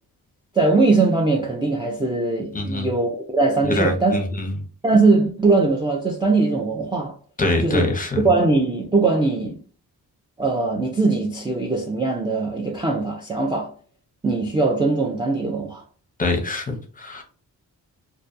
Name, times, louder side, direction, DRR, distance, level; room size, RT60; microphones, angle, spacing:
voice 1, 0.5-4.2 4.8-7.2 7.6-7.9 8.2-9.6 10.4-13.7 14.2-15.8, right 3 dB, 15° right, 0.3 m, -20 dB
voice 2, 2.5-2.9 3.6-4.6 7.4-8.2 16.2-17.2, left 2 dB, 20° left, 0.7 m, -24 dB
2.2 x 2.2 x 2.5 m
cardioid pair, 70°, 39 cm